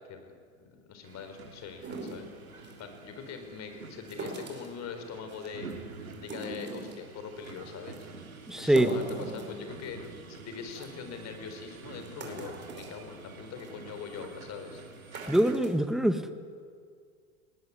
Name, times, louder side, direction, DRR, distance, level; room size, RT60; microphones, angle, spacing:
voice 1, 0.6-2.3 2.8-5.7 6.2-8.1 8.5-10.0 10.3-14.8, left 6 dB, 40° left, 7 dB, 4.2 m, -42 dB
sound 1, 1.0-15.5, right 4 dB, 85° right, 3.1 m, -48 dB
sound 2, 1.8-2.8 4.1-4.8 5.3-5.7 6.1-7.1 7.4-7.6 7.9-8.0 8.5-10.1 10.4-10.5 10.7-10.9 11.5-11.6 12.0-13.0 13.5-13.7 14.2-14.3 14.9-15.7, right 2 dB, 25° right, 5.2 m, -40 dB
voice 2, 8.5-8.9 15.3-16.3, right 1 dB, ahead, 9 dB, 1.5 m, -24 dB
20.5 x 19.5 x 9.7 m, 2.1 s
hypercardioid pair, 95°, 41 cm